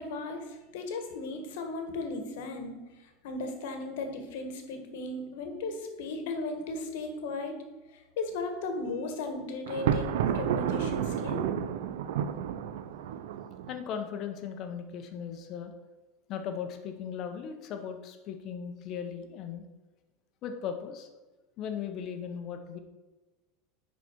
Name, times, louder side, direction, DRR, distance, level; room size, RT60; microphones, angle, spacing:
voice 1, 0.0-2.8 3.2-7.6 7.9-11.5, left 3 dB, 80° left, 5 dB, 1.5 m, -36 dB
Thunder, 9.7-13.8, right 9 dB, 85° right, 0.5 m, -31 dB
voice 2, 13.7-15.7 16.3-19.6 20.4-21.1 21.6-22.8, left 7 dB, 40° left, 6 dB, 0.9 m, -37 dB
10.5 x 4.2 x 4.6 m, 1.2 s
supercardioid pair, 150°, 0 cm